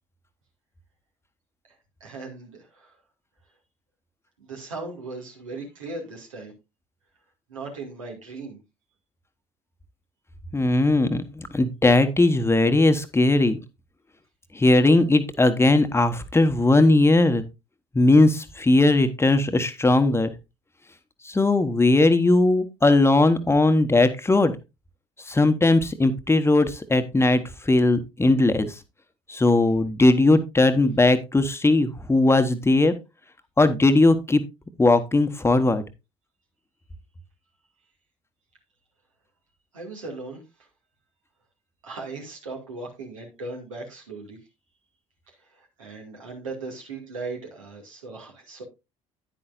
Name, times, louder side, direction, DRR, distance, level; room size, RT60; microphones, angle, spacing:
voice 1, 2.0-3.0 4.4-6.5 7.5-8.6 39.7-40.4 41.8-44.4 45.3-48.6, right 3 dB, 80° right, 1 dB, 2.2 m, -38 dB
voice 2, 10.5-13.6 14.5-17.4 17.9-20.3 21.2-24.5 25.2-28.8 29.3-32.9 33.6-34.4 34.8-35.8, left 2 dB, 15° left, 9 dB, 1.1 m, -19 dB
9.8 x 9.8 x 2.5 m, 0.24 s
figure-of-eight pair, 55°, 17 cm